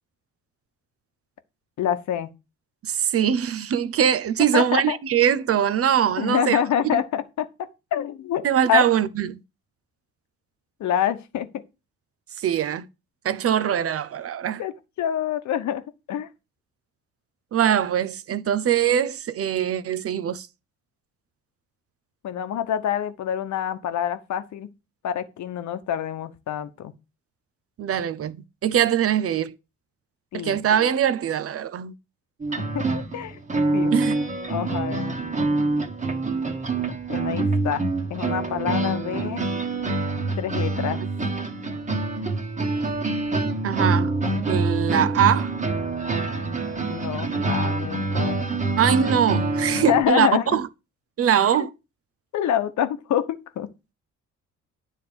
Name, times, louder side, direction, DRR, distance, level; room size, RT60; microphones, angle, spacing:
voice 1, 1.8-2.3 4.5-5.0 6.2-7.5 7.9-8.8 10.8-11.6 14.6-14.7 15.0-15.8 16.1-16.3 22.2-24.7 25.0-26.9 30.3-30.6 32.6-33.4 33.7-33.9 34.5-35.2 37.1-37.8 38.1-39.4 40.4-41.0 46.9-48.4 49.7-50.6 51.5-51.7 52.3-53.7, left 9 dB, 70° left, 1.0 m, -26 dB
voice 2, 2.8-6.6 6.9-7.0 8.4-9.4 12.4-12.9 13.2-14.6 17.5-20.5 27.8-29.5 30.3-31.9 33.9-34.2 43.6-44.1 44.5-45.5 48.8-50.7 51.2-51.7, right 9 dB, 50° right, 0.7 m, -22 dB
sound 1, 32.4-50.0, right 3 dB, 25° right, 1.5 m, -26 dB
9.9 x 3.6 x 6.9 m
cardioid pair, 90°, 30 cm